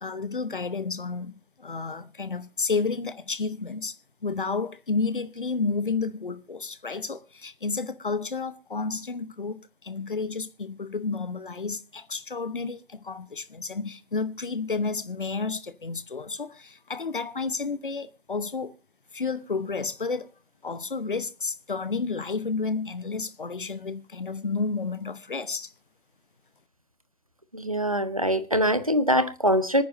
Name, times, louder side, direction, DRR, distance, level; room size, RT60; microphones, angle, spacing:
voice 1, 0.0-4.0 4.2-18.7 19.1-20.3 20.6-25.7, left 4 dB, 35° left, 0.9 m, -31 dB
voice 2, 27.5-29.8, equal, 25° right, 0.7 m, -23 dB
26.0 x 9.4 x 2.6 m
figure-of-eight pair, 160°, 43 cm